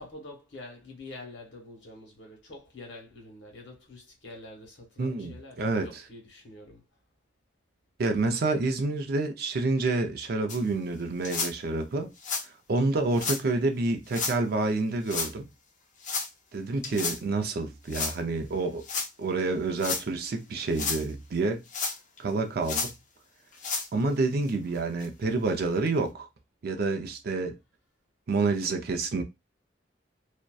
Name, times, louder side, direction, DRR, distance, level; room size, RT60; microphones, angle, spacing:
voice 1, 0.0-6.8, left 2 dB, 75° left, 1.1 m, -46 dB
voice 2, 5.0-6.0 8.0-12.1 12.4-15.5 16.5-18.8 19.2-21.6 22.2-22.9 23.9-26.3 26.6-27.6 28.3-29.2, right 3 dB, 55° right, 0.4 m, -28 dB
sound 1, 10.5-10.6 11.2-11.5 12.2-12.5 13.1-13.4 14.1-14.4 15.1-15.3 16.0-16.3 16.8-17.2 17.9-18.2 18.8-19.1 19.7-20.0 20.6-21.0 21.7-22.2 22.6-22.9 23.5-23.9 24.5-24.6 25.0-25.1 25.9-26.0, left 4 dB, 45° left, 0.5 m, -31 dB
2.6 x 2.1 x 2.2 m
head